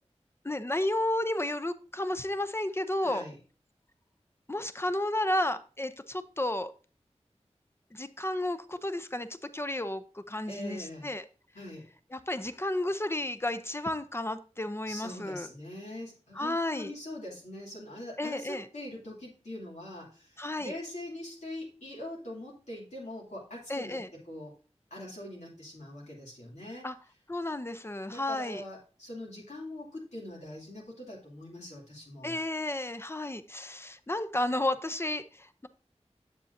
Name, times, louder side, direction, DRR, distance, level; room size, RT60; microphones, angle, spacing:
voice 1, 0.4-3.2 4.5-6.7 7.9-9.3 9.5-11.2 12.1-15.5 16.4-16.9 18.2-18.7 20.4-20.7 23.7-24.1 26.8-26.9 27.3-28.6 32.2-35.7, left 1 dB, 20° left, 12 dB, 0.6 m, -32 dB
voice 2, 3.0-3.4 10.5-11.1 11.5-11.9 14.9-24.5 24.9-26.9 28.0-32.4, left 1 dB, 80° left, -4 dB, 2.7 m, -43 dB
7.5 x 7.1 x 2.6 m, 0.37 s
wide cardioid pair, 50°, 12 cm